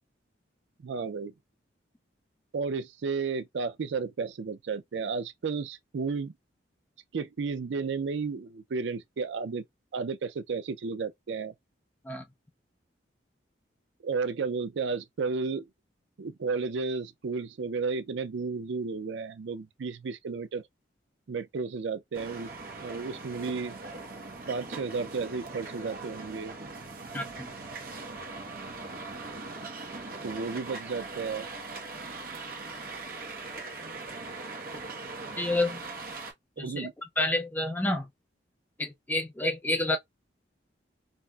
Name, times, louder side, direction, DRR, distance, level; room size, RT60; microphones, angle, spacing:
voice 1, 0.8-1.3 2.5-6.3 7.1-9.6 9.9-11.5 14.0-15.6 16.2-20.6 21.3-22.5 22.8-23.8 24.5-26.6 30.2-31.5 36.6-36.9, right 4 dB, 70° right, 0.4 m, -33 dB
sound 1, 22.1-36.3, right 3 dB, 50° right, 0.8 m, -40 dB
voice 2, 27.1-27.5 35.4-35.8 36.6-36.9 37.2-38.1 38.8-40.0, left 2 dB, 10° left, 0.3 m, -29 dB
4.0 x 2.1 x 2.3 m
head